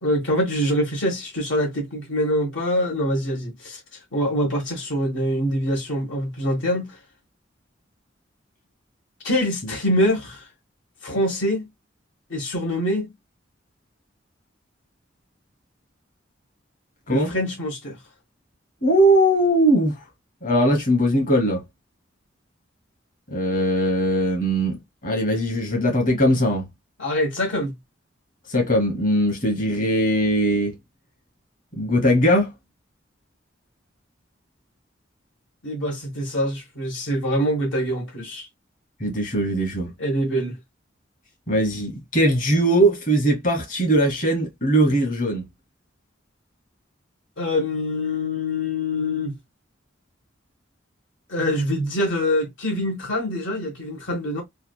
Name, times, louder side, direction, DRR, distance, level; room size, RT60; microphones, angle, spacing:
voice 1, 0.0-3.8 4.1-7.0 9.2-10.5 11.0-11.7 12.3-13.1 17.1-18.0 27.0-27.7 35.6-38.5 40.0-40.6 47.4-49.3 51.3-54.4, equal, 70° left, 1.2 m, -24 dB
voice 2, 18.8-20.0 20.4-21.6 23.3-26.7 28.5-30.7 31.8-32.5 39.0-39.9 41.5-45.4, right 1 dB, 45° left, 1.3 m, -20 dB
3.4 x 2.3 x 2.3 m
head